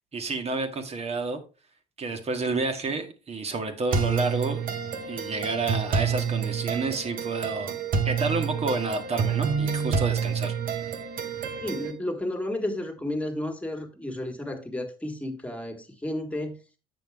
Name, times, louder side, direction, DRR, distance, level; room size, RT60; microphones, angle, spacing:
voice 1, 0.1-1.4 2.0-4.6 5.1-7.7 8.0-10.5, right 3 dB, 40° right, 1.6 m, -30 dB
sound 1, 3.9-11.9, right 6 dB, 60° right, 1.4 m, -28 dB
voice 2, 11.6-16.6, left 1 dB, 10° left, 1.8 m, -32 dB
8.0 x 6.2 x 3.6 m
cardioid pair, 110°, 17 cm